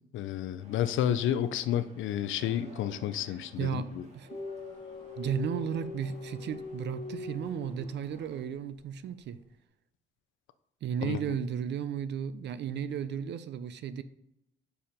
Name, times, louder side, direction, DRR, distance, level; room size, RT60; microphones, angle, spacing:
voice 1, 0.1-4.0 11.0-11.2, left 10 dB, 80° left, 12 dB, 0.5 m, -31 dB
sound 1, 0.6-8.4, right 1 dB, 35° right, 1.8 m, -55 dB
voice 2, 3.3-3.9 4.1-4.4 5.2-9.4 10.8-14.0, right 8 dB, 60° right, 14 dB, 0.5 m, -34 dB
sound 2, 4.3-8.3, left 3 dB, 25° left, 1.2 m, -42 dB
5.6 x 4.4 x 4.9 m, 0.81 s
cardioid pair, 90°, 20 cm